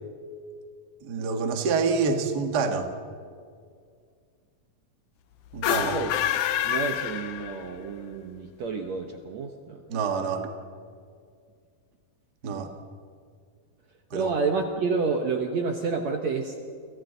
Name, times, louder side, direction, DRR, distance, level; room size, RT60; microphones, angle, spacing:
voice 1, 1.0-2.9 5.5-6.0 9.9-10.5 12.4-12.7 14.1-14.3, right 5 dB, 45° right, 4 dB, 1.4 m, -27 dB
sound 1, 5.5-7.9, left 11 dB, 70° left, 2.0 m, -27 dB
voice 2, 5.7-6.1 6.6-9.8 12.5-12.7 14.1-16.5, right 4 dB, 65° right, 3 dB, 1.9 m, -29 dB
29.5 x 27.5 x 4.0 m, 2.1 s
omnidirectional pair, 4.4 m